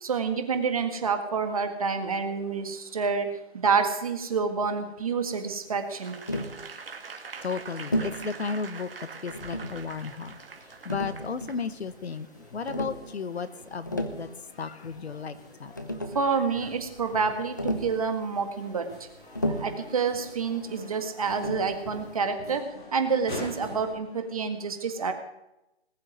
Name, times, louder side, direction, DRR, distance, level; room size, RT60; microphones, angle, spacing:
voice 1, 0.0-3.3 3.6-6.1 16.1-17.6 17.8-18.9 19.4-22.6 22.9-25.1, right 5 dB, 35° right, 7 dB, 1.8 m, -28 dB
Applause / Crowd, 5.9-11.6 12.1-12.3, right 5 dB, 60° right, 2.3 m, -43 dB
Tap, 6.3-6.6 7.9-8.2 9.3-9.8 10.9-11.7 12.7-13.0 13.7-14.2 15.4-15.5 15.8-16.3 17.6-18.0 19.4-19.8 21.4-21.8, equal, 20° left, 0.6 m, -31 dB
voice 2, 6.9-10.4 10.8-12.3 12.5-15.8, left 5 dB, 80° left, 13 dB, 1.6 m, -34 dB
sound 1, 9.3-23.9, left 2 dB, 50° left, 6.4 m, -47 dB
19.5 x 7.1 x 9.4 m, 0.89 s
hypercardioid pair, 180°, 32 cm